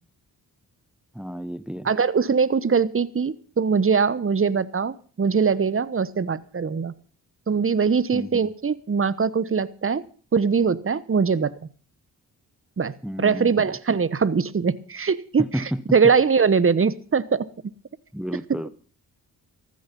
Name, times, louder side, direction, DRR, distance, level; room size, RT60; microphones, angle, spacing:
voice 1, 1.1-1.9 8.1-8.5 13.0-13.7 15.4-16.1 18.1-18.7, equal, ahead, 14 dB, 1.0 m, -31 dB
voice 2, 1.8-6.9 7.5-10.0 10.3-11.5 12.8-15.6 15.9-17.5, right 5 dB, 35° right, 18 dB, 1.0 m, -22 dB
14.5 x 13.0 x 5.3 m, 0.41 s
supercardioid pair, 50°, 40 cm